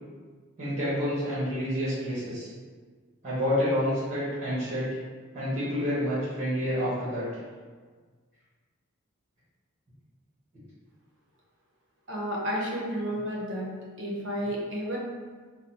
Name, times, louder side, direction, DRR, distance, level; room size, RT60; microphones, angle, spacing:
voice 1, 0.6-2.5 3.2-4.8 5.3-7.3, equal, 35° right, -9 dB, 1.0 m, -28 dB
voice 2, 12.1-13.7 14.0-15.0, equal, 60° right, -2 dB, 0.6 m, -31 dB
3.7 x 2.0 x 2.8 m, 1.5 s
head